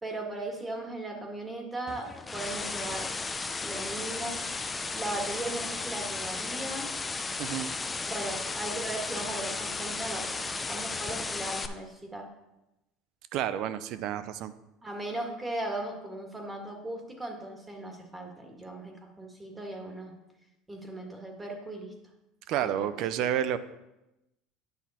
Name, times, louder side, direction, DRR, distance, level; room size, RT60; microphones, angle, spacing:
voice 1, 0.0-3.1 3.6-4.4 4.9-6.9 8.1-12.3 14.8-20.1 20.7-21.9 22.6-22.9, right 2 dB, 15° right, 2 dB, 1.8 m, -37 dB
sound 1, 1.9-11.7, left 3 dB, 20° left, 0.6 m, -34 dB
voice 2, 7.4-7.7 13.3-14.5 22.5-23.6, right 10 dB, 60° right, 13 dB, 0.5 m, -30 dB
9.6 x 5.9 x 4.3 m, 0.93 s
supercardioid pair, 100°, 0 cm